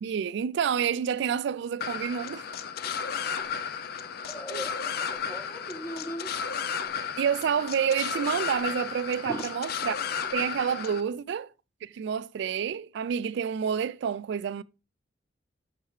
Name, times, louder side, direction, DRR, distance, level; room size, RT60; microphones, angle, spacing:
voice 1, 0.0-2.4 4.5-4.6 7.2-9.9 10.3-11.5 11.8-14.6, right 7 dB, 70° right, 0.3 m, -29 dB
sound 1, 1.8-11.0, left 7 dB, 55° left, 0.4 m, -33 dB
voice 2, 4.3-6.4 9.2-9.5, equal, 15° left, 1.2 m, -39 dB
6.7 x 4.6 x 3.1 m
head